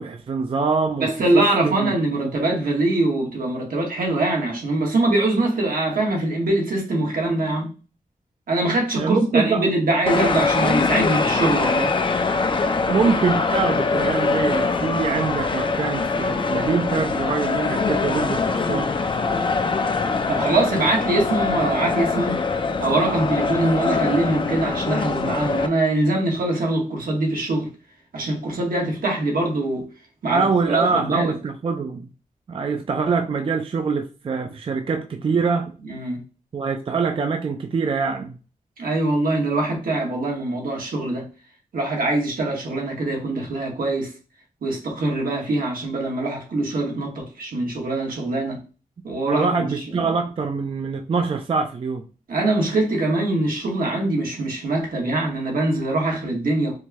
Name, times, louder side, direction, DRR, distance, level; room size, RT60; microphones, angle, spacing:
voice 1, 0.0-2.4 8.9-9.7 12.9-18.9 30.3-32.1 32.5-35.7 36.5-38.4 49.3-52.0, right 4 dB, 40° right, 0.4 m, -24 dB
voice 2, 1.0-7.7 8.5-11.9 20.3-22.4 22.8-27.7 28.1-29.9 30.2-31.3 35.8-36.2 38.8-41.3 41.7-44.1 44.6-48.6 49.0-49.7 49.9-50.1 52.3-56.8, right 2 dB, 80° right, 1.4 m, -23 dB
sound 1, 10.1-25.7, left 4 dB, 35° left, 0.4 m, -23 dB
4.5 x 2.2 x 2.8 m
wide cardioid pair, 145°, 15 cm